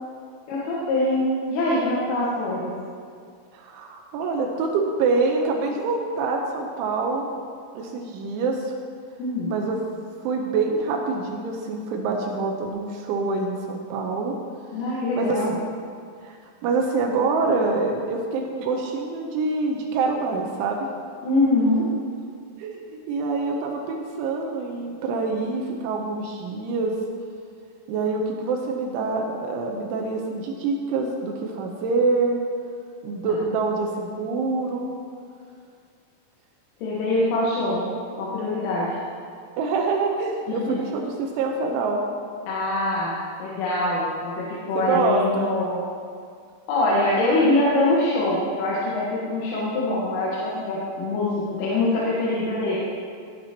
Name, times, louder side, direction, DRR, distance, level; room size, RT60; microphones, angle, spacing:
voice 1, 0.5-2.7 9.2-9.5 14.7-15.5 21.2-21.9 36.8-37.8 38.2-39.0 40.5-40.8 42.5-45.8 46.7-52.8, left 2 dB, 80° left, -7 dB, 3.9 m, -24 dB
voice 2, 3.5-7.3 7.7-8.7 9.5-9.8 10.2-14.3 15.2-15.6 16.2-16.4 16.6-20.9 22.6-27.0 27.9-32.4 33.0-35.0 39.6-42.0 44.8-45.5, right 3 dB, 80° right, 1 dB, 3.0 m, -25 dB
16.5 x 9.3 x 2.9 m, 2.2 s
omnidirectional pair, 5.9 m